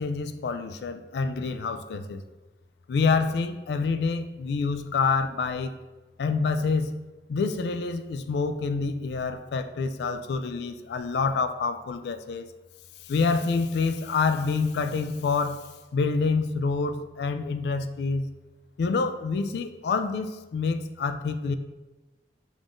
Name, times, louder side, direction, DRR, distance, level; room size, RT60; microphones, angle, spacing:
voice 1, 0.0-2.2 2.9-5.7 6.2-6.9 7.3-12.5 13.1-15.6 15.9-18.3 18.8-21.6, left 4 dB, 65° left, 9 dB, 0.3 m, -27 dB
5.0 x 3.6 x 2.5 m, 1.1 s
head